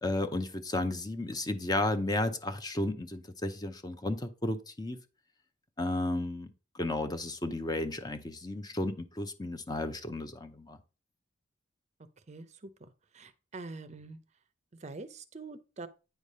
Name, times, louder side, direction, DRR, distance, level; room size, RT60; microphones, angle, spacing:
voice 1, 0.0-5.0 5.8-10.8, left 2 dB, 20° left, 0.6 m, -33 dB
voice 2, 12.3-12.9 13.1-14.2 14.8-15.9, right 3 dB, 35° right, 0.6 m, -45 dB
9.1 x 3.3 x 5.4 m
head